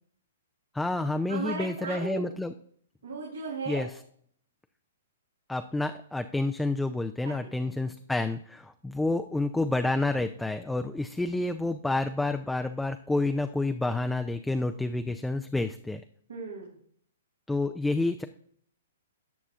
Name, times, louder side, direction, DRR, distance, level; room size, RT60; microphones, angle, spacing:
voice 1, 0.7-2.5 3.7-4.0 5.5-16.0 17.5-18.2, left 2 dB, 5° left, 8 dB, 0.4 m, -29 dB
voice 2, 1.3-2.3 3.0-3.8 7.2-7.4 7.6-7.9 16.3-16.7, right 4 dB, 90° right, -4 dB, 3.0 m, -36 dB
17.5 x 6.1 x 2.4 m, 0.62 s
hypercardioid pair, 130°, 0 cm